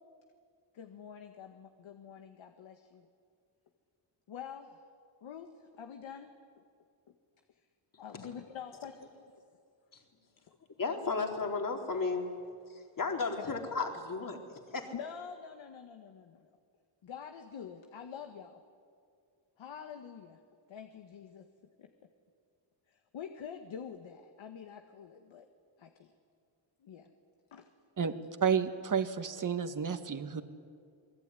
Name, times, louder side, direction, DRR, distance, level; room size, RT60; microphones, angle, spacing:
voice 1, 0.7-3.1 4.3-4.8 5.2-6.3 8.0-9.1 13.4-13.5 14.9-16.4 17.0-18.6 19.6-20.4 20.7-21.5 21.8-21.9 22.9-25.5 25.8-26.1 26.8-27.1 27.5-27.7 28.0-28.3, left 7 dB, 65° left, 6 dB, 1.9 m, -46 dB
voice 2, 10.8-12.3 13.0-14.9, left 4 dB, 40° left, 3 dB, 4.3 m, -34 dB
voice 3, 28.4-30.4, right 7 dB, 40° right, 8 dB, 2.0 m, -31 dB
28.5 x 21.0 x 10.0 m, 2.2 s
cardioid pair, 85°, 49 cm